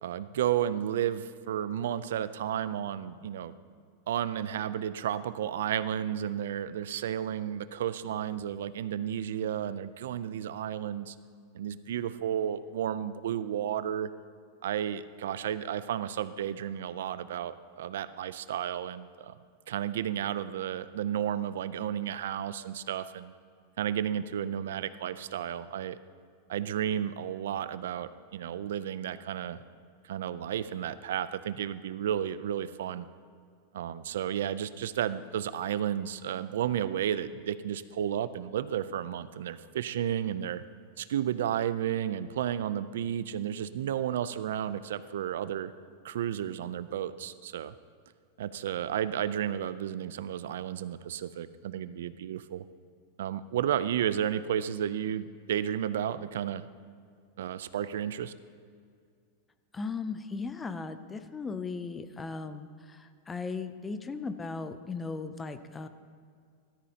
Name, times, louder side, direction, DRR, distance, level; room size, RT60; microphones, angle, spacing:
voice 1, 0.0-3.6 4.1-11.2 11.5-14.1 14.6-19.3 19.7-23.3 23.8-26.0 26.5-29.6 30.0-33.1 33.7-40.6 41.0-45.7 46.0-47.7 48.4-52.6 53.2-56.7 57.4-58.3, right 10 dB, 85° right, 14 dB, 0.4 m, -32 dB
voice 2, 59.7-65.9, left 4 dB, 10° left, 11 dB, 0.4 m, -37 dB
14.0 x 13.0 x 2.8 m, 2.2 s
supercardioid pair, 180°, 0 cm